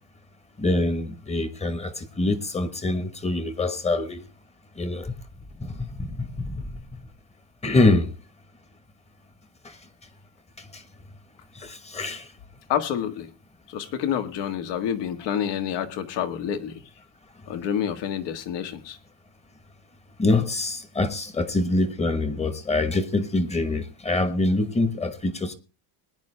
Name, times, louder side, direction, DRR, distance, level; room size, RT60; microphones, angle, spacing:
voice 1, 0.6-4.2 4.8-5.1 5.8-6.6 7.6-8.1 10.7-10.8 11.6-12.2 20.2-25.5, left 2 dB, 15° left, 1.1 m, -25 dB
voice 2, 12.7-13.3 13.7-16.8 17.5-19.0, left 9 dB, 70° left, 1.7 m, -28 dB
20.0 x 10.0 x 3.3 m
cardioid pair, 150°, 43 cm